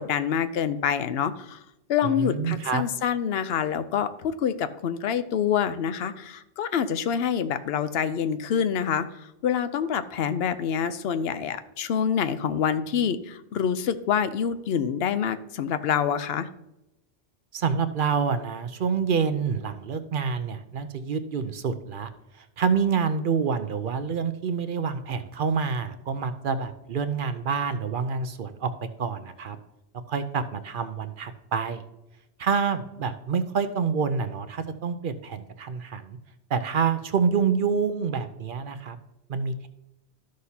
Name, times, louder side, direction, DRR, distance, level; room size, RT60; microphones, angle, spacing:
voice 1, 0.0-1.6 1.9-16.5, left 8 dB, 75° left, 12 dB, 0.9 m, -26 dB
voice 2, 2.0-2.8 17.5-22.1 22.6-28.7 29.0-29.6 30.1-31.8 32.4-36.2 36.5-39.0 39.3-39.7, right 6 dB, 60° right, 10 dB, 0.7 m, -27 dB
13.0 x 6.4 x 2.8 m, 0.89 s
omnidirectional pair, 1.1 m